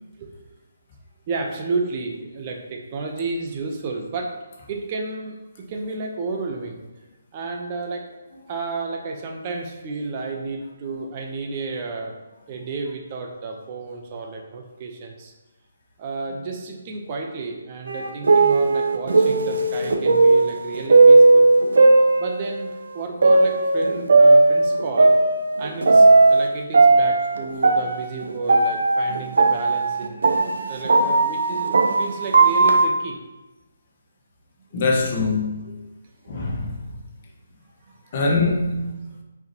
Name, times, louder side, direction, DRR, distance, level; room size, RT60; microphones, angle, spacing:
voice 1, 1.3-4.3 4.7-6.8 7.3-8.0 8.5-12.2 12.5-15.3 16.0-21.5 22.2-25.2 25.6-33.2 35.6-35.8 38.0-38.2, right 3 dB, 35° right, 1.1 m, -32 dB
sound 1, 17.9-22.7 23.2-26.5 26.7-32.8, right 3 dB, 65° right, 1.0 m, -16 dB
voice 2, 34.7-35.6 36.3-36.8 38.1-39.0, left 3 dB, 40° left, 1.6 m, -23 dB
9.3 x 4.7 x 3.1 m
figure-of-eight pair, 145°, 0 cm